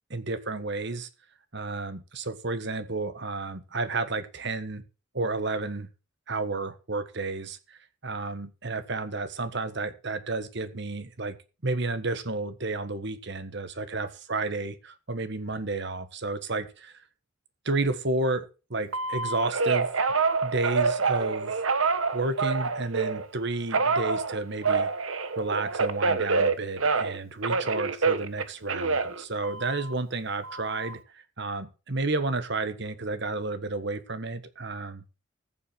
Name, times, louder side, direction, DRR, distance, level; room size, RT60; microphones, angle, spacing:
voice 1, 0.1-1.1 1.5-4.8 5.1-5.9 6.3-11.4 11.6-16.9 17.6-19.9 20.4-21.5 22.1-24.9 25.4-35.0, right 3 dB, 55° right, 1.5 m, -31 dB
Telephone, 18.9-23.3 23.7-27.2 27.4-29.9 30.4-30.9, right 4 dB, 85° right, 1.3 m, -27 dB
14.5 x 7.4 x 6.3 m
head